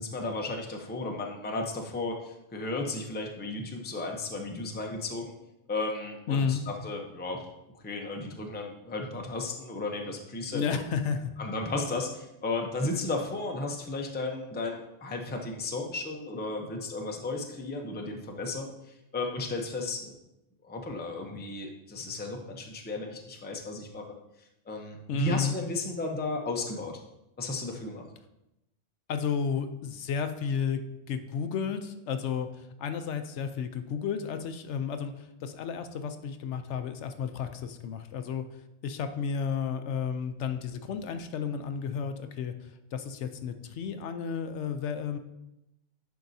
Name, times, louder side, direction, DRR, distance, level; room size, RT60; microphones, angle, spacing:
voice 1, 0.0-5.3 5.7-7.5 7.7-10.8 11.4-20.2 20.6-24.0 24.4-27.0 27.4-28.0, left 3 dB, 10° left, 2 dB, 0.5 m, -34 dB
voice 2, 6.3-6.6 10.5-11.3 25.1-25.6 29.1-30.8 31.1-38.5 38.8-45.2, left 6 dB, 75° left, 8 dB, 0.8 m, -32 dB
10.5 x 4.7 x 2.7 m, 0.89 s
omnidirectional pair, 1.3 m